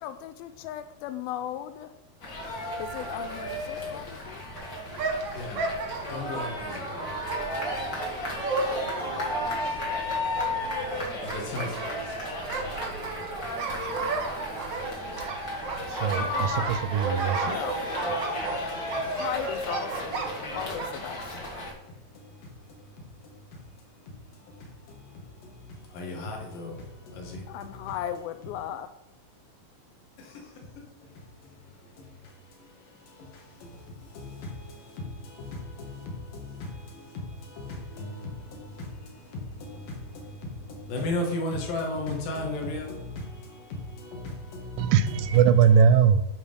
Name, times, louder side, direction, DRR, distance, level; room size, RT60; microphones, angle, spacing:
voice 1, 0.0-1.9 2.7-4.4 17.4-17.9 19.0-21.4 27.1-27.2 27.5-28.9, left 11 dB, 90° left, 11 dB, 2.4 m, -37 dB
sound 1, 2.2-21.7, left 1 dB, 50° left, 1.1 m, -34 dB
sound 2, 4.5-21.0, right 4 dB, 65° right, 1.5 m, -34 dB
voice 2, 5.3-5.7 6.0-7.1 11.2-11.9 18.4-19.2 20.4-20.6 21.3-27.9 30.2-44.9, left 2 dB, 70° left, 1 dB, 3.1 m, -38 dB
voice 3, 15.9-17.6 44.8-46.2, right 7 dB, 85° right, 11 dB, 2.5 m, -21 dB
10.0 x 3.8 x 5.1 m, 0.87 s
omnidirectional pair, 4.2 m